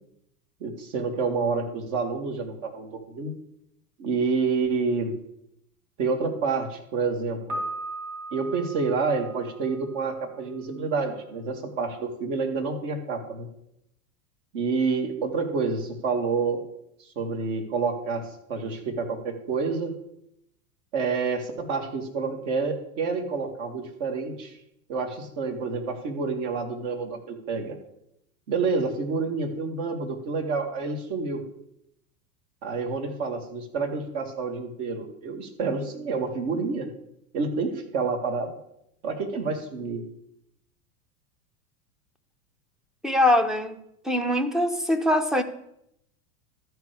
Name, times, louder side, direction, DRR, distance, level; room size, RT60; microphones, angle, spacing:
voice 1, 0.6-3.4 4.0-5.1 6.0-7.6 8.3-13.5 14.5-16.6 17.2-18.2 18.5-19.9 20.9-24.5 24.9-27.8 28.5-31.4 32.6-36.9 37.3-38.5 39.0-40.0, right 4 dB, 55° right, 4 dB, 2.0 m, -28 dB
Piano, 7.5-10.4, right 1 dB, 70° right, 3.1 m, -37 dB
voice 2, 43.0-43.8 44.0-45.4, left 1 dB, ahead, 7 dB, 0.5 m, -22 dB
13.0 x 4.6 x 6.8 m, 0.77 s
hypercardioid pair, 95°, 45 cm